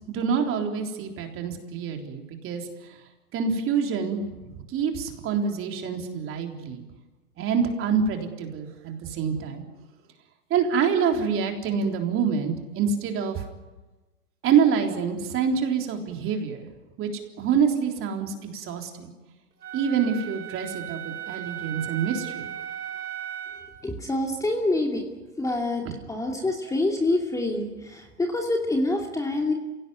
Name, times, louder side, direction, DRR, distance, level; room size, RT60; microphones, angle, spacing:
voice 1, 0.1-2.7 3.3-4.2 4.7-6.8 7.4-9.6 10.5-13.4 14.4-16.6 17.0-17.1 17.4-19.1 19.7-22.5, right 6 dB, 25° right, 3 dB, 3.8 m, -26 dB
Wind instrument woodwind instrument, 19.6-23.8, right 10 dB, 75° right, 6.2 m, -36 dB
voice 2, 23.8-25.0 25.4-25.8 26.1-29.5, left 2 dB, 5° left, 1 dB, 2.6 m, -26 dB
28.5 x 17.5 x 9.7 m, 1.1 s
hypercardioid pair, 125°, 47 cm